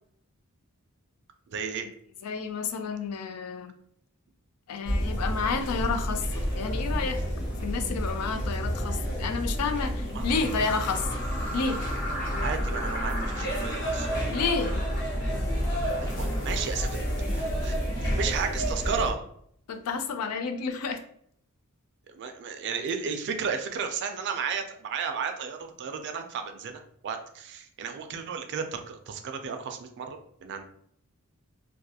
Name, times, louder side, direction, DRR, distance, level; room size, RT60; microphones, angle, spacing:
voice 1, 1.5-1.9 10.1-10.3 12.4-14.1 16.0-17.0 17.3-19.2 22.1-30.6, right 6 dB, 50° right, 6 dB, 0.3 m, -33 dB
voice 2, 2.2-3.8 4.7-7.2 7.6-11.1 11.5-11.8 14.3-14.9 19.7-21.0, left 5 dB, 80° left, 8 dB, 0.4 m, -30 dB
sound 1, 4.8-19.1, equal, 50° left, 0.8 m, -30 dB
sound 2, 10.0-16.6, equal, 35° left, 1.1 m, -38 dB
2.4 x 2.3 x 2.7 m, 0.67 s
head